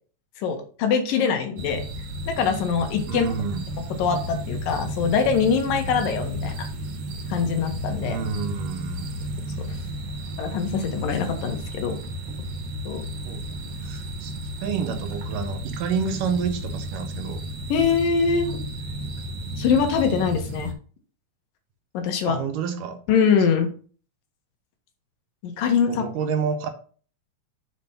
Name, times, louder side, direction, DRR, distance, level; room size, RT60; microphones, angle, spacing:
voice 1, 0.4-1.8 2.3-3.3 4.0-6.7 7.3-8.2 10.4-12.0 12.9-13.0 17.7-18.6 19.6-20.7 21.9-22.4 23.1-23.7 25.6-26.0, left 6 dB, 80° left, 5 dB, 2.9 m, -23 dB
sound 1, 1.6-20.7, right 1 dB, 55° right, 2.1 m, -33 dB
voice 2, 3.1-3.6 8.0-9.2 13.2-14.3 14.6-17.4 22.3-23.0 25.9-26.7, right 6 dB, 75° right, 6 dB, 2.6 m, -29 dB
7.0 x 4.4 x 5.9 m, 0.41 s
omnidirectional pair, 4.0 m